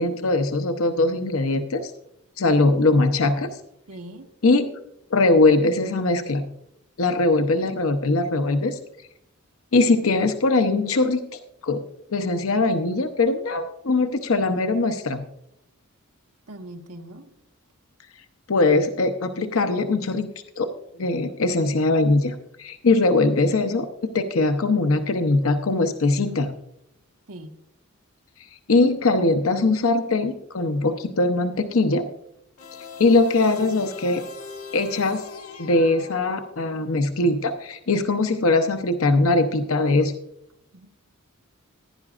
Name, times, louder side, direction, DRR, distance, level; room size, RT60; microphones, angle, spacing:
voice 1, 0.0-1.9 2.4-3.5 4.4-4.6 5.1-6.4 7.0-8.8 9.7-11.8 12.1-15.2 18.5-20.3 20.6-20.7 21.0-23.9 24.1-26.5 28.7-32.0 33.0-34.2 34.7-35.2 35.6-40.1, left 2 dB, 70° left, 8 dB, 0.7 m, -21 dB
voice 2, 3.9-4.3 16.5-17.3 27.3-27.5 40.7-40.9, right 1 dB, 85° right, 3 dB, 1.5 m, -40 dB
sound 1, 32.6-36.9, left 5 dB, 90° left, 1.7 m, -40 dB
15.5 x 10.5 x 2.4 m, 0.77 s
head